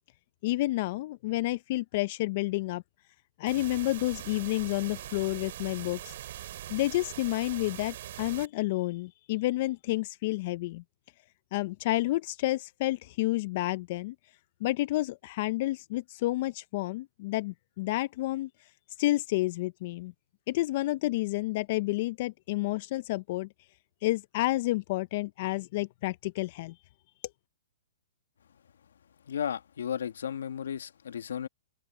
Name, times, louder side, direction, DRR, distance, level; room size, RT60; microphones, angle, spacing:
voice 1, 0.4-2.8 3.4-6.2 6.7-10.8 11.5-14.1 14.6-18.7 19.0-20.1 20.5-23.5 24.0-26.7, left 18 dB, 45° left, 0.6 m, -30 dB
sound 1, 3.5-8.5, right 12 dB, 55° right, 7.4 m, -42 dB
voice 2, 29.3-31.5, left 8 dB, 75° left, 1.7 m, -34 dB
open air
hypercardioid pair, 140°, 0 cm